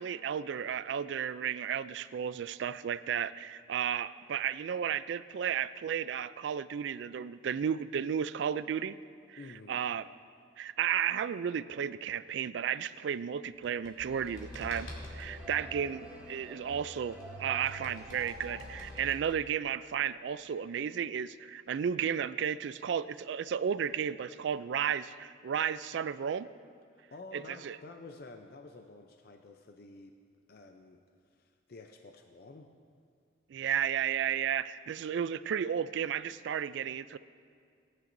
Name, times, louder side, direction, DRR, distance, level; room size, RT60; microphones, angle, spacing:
voice 1, 0.0-8.9 9.3-9.4 9.7-10.1 10.6-26.5 27.3-27.8 33.5-37.2, right 8 dB, 65° right, 16 dB, 0.3 m, -33 dB
voice 2, 9.4-9.8 26.9-30.1 30.5-31.0 31.3-32.7, left 3 dB, 50° left, 5 dB, 0.5 m, -50 dB
sound 1, 13.5-15.3 17.1-19.7, left 1 dB, 80° left, 2.5 m, -51 dB
sound 2, 14.0-19.0, equal, 5° right, 2.7 m, -46 dB
18.5 x 10.5 x 2.6 m, 2.2 s
head